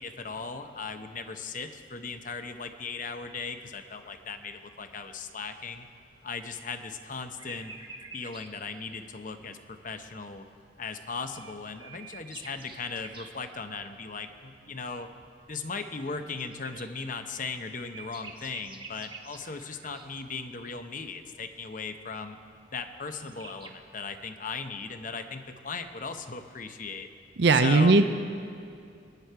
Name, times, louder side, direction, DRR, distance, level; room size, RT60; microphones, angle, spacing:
voice 1, 0.0-5.9 6.2-7.7 8.1-10.5 10.8-15.1 15.5-22.4 22.7-27.1 27.5-27.9, left 4 dB, 45° left, 7 dB, 0.8 m, -38 dB
sound 1, 7.1-8.5 11.1-13.4 16.0-20.2 22.8-22.9 23.1-23.7, right 4 dB, 25° right, 1.0 m, -48 dB
voice 2, 27.4-28.1, right 3 dB, 60° right, 9 dB, 0.6 m, -18 dB
23.5 x 10.5 x 4.7 m, 2.5 s
head